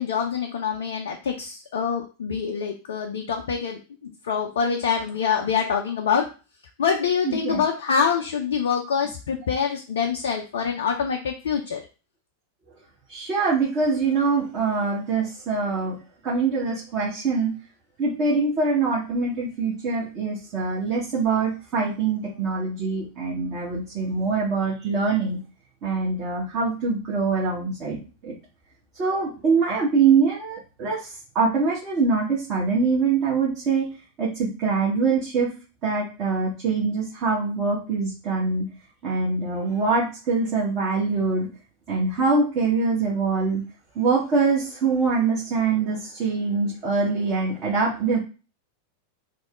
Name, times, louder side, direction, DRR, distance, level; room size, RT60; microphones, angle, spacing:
voice 1, 0.0-6.3 6.8-11.8, left 6 dB, 60° left, 2 dB, 0.4 m, -25 dB
voice 2, 7.2-7.6 13.1-16.0 16.2-17.5 18.0-25.4 25.8-28.3 29.0-33.9 34.2-35.5 35.8-38.7 39.0-41.5 41.9-43.6 43.9-48.2, right 4 dB, 35° right, -6 dB, 1.0 m, -24 dB
3.0 x 2.1 x 3.5 m, 0.33 s
figure-of-eight pair, 90°, 0 cm